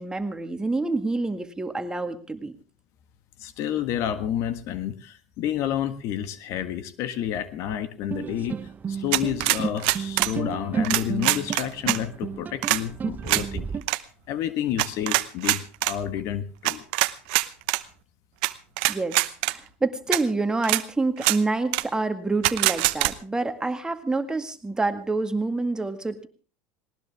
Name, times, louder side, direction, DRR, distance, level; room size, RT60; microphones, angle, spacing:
voice 1, 0.0-2.6 18.9-26.3, right 3 dB, 15° right, 8 dB, 1.9 m, -27 dB
voice 2, 3.4-8.6 8.9-13.7 14.3-16.8, left 10 dB, 60° left, 11 dB, 1.6 m, -30 dB
sound 1, 8.1-13.8, right 7 dB, 30° right, 0.9 m, -32 dB
sound 2, 9.1-10.3 10.8-12.0 12.6-12.8 13.3-13.4 13.8-14.0 14.8-15.9 16.6-17.8 18.4-18.5 18.8-19.5 20.1-20.2 20.6-20.8 21.2-21.4 21.7-21.8 22.4-23.1, right 22 dB, 75° right, 0.9 m, -23 dB
19.0 x 19.0 x 3.6 m, 0.39 s
supercardioid pair, 90°, 6 cm